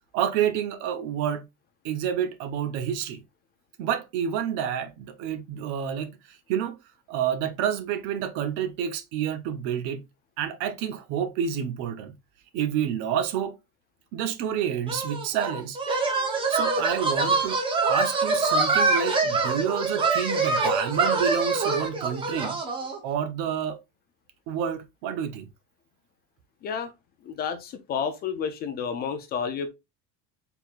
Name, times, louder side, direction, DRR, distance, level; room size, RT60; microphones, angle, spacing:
voice 1, 0.1-1.5 1.8-3.2 3.8-6.8 7.1-10.0 10.4-12.1 12.5-13.6 14.1-15.8 16.5-17.6 17.9-22.6 23.0-23.8 24.5-25.5, right 9 dB, 55° right, 0.8 m, -29 dB
sound 1, 14.9-23.0, right 3 dB, 15° right, 0.8 m, -25 dB
voice 2, 27.3-29.7, left 6 dB, 30° left, 0.4 m, -30 dB
4.5 x 3.5 x 2.4 m
cardioid pair, 165°, 34 cm